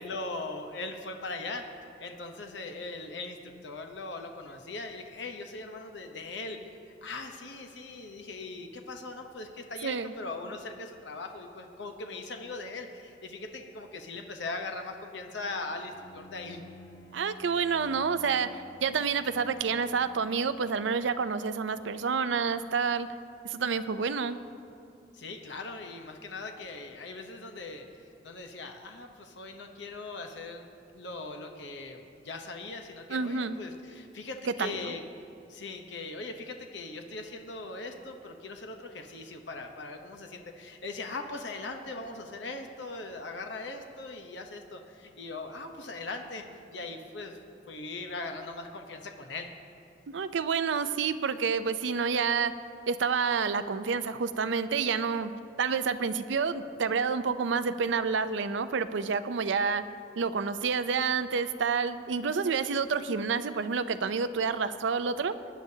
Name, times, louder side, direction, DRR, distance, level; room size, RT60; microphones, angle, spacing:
voice 1, 0.0-1.6 2.0-6.7 7.0-16.6 25.1-27.8 28.2-35.0 35.5-46.4 46.7-47.4 47.7-49.5, left 3 dB, 70° left, 4 dB, 0.9 m, -40 dB
voice 2, 9.8-10.1 17.1-23.1 23.4-24.4 33.1-33.6 34.6-34.9 50.1-52.5 52.9-55.3 55.6-59.8 60.2-65.3, right 5 dB, 75° right, 12 dB, 0.5 m, -29 dB
Bowed string instrument, 15.9-20.9, left 1 dB, 55° left, 1.2 m, -53 dB
21.0 x 10.0 x 2.8 m, 2.5 s
head